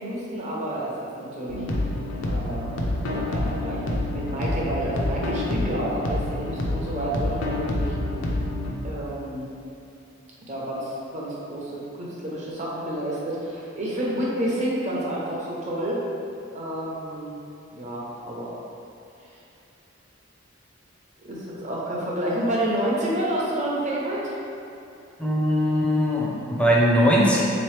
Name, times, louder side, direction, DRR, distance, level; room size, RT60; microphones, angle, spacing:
voice 1, 0.0-1.6 2.3-2.7 3.0-7.9 8.8-9.5 10.5-16.0 16.5-17.4 17.8-18.5 21.2-24.3, right 1 dB, 40° right, -5 dB, 0.8 m, -29 dB
sound 1, 1.5-8.7, left 1 dB, 75° left, 0.5 m, -28 dB
voice 2, 25.2-27.4, equal, 5° left, -5 dB, 0.5 m, -20 dB
3.8 x 3.0 x 3.2 m, 2.7 s
head